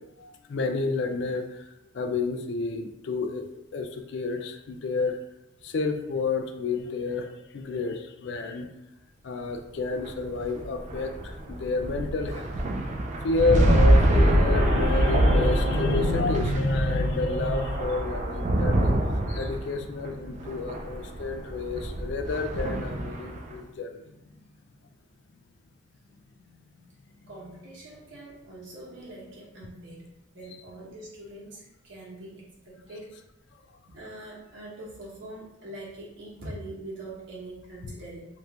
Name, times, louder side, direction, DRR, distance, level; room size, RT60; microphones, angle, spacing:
voice 1, 0.2-1.6 1.9-5.2 5.6-8.7 9.2-12.5 13.2-19.0 19.3-24.0, left 3 dB, 60° left, 6 dB, 0.3 m, -29 dB
sound 1, 9.9-23.5, right 1 dB, 35° right, 0.3 m, -25 dB
voice 2, 27.3-33.1 33.9-38.3, right 1 dB, 65° right, -5 dB, 1.1 m, -43 dB
2.9 x 2.5 x 3.2 m, 0.86 s
head